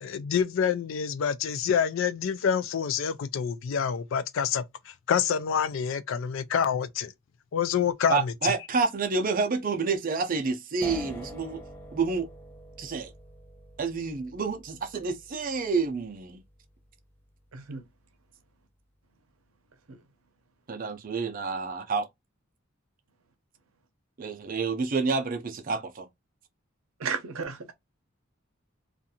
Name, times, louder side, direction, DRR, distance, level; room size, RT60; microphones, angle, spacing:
voice 1, 0.0-7.1 7.5-8.5, left 7 dB, 65° left, 0.3 m, -27 dB
voice 2, 8.1-11.6 11.9-12.3 12.8-13.1 13.8-16.4 20.7-22.1 24.2-26.1, right 4 dB, 45° right, 0.5 m, -29 dB
sound 1, 10.8-17.8, equal, 10° left, 0.5 m, -46 dB
voice 3, 27.0-27.7, right 5 dB, 90° right, 0.6 m, -33 dB
2.5 x 2.3 x 2.7 m
head